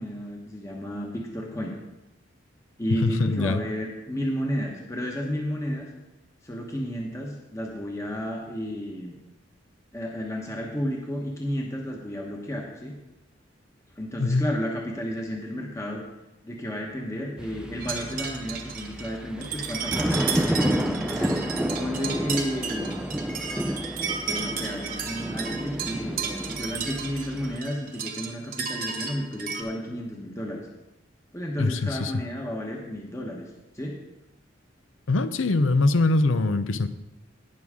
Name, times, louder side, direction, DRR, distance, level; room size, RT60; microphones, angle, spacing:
voice 1, 0.0-1.8 2.8-5.9 6.4-9.1 9.9-12.9 14.0-16.0 16.4-23.1 24.2-30.7 31.3-33.5 33.7-33.9, equal, 15° left, -1 dB, 1.1 m, -32 dB
voice 2, 3.0-3.6 14.2-14.5 31.6-32.1 35.1-36.9, left 2 dB, 80° left, 12 dB, 0.6 m, -23 dB
sound 1, 17.4-27.6, equal, 5° right, 0.4 m, -31 dB
sound 2, 17.8-29.6, right 6 dB, 45° right, 1.1 m, -33 dB
18.0 x 6.2 x 3.6 m, 0.98 s
head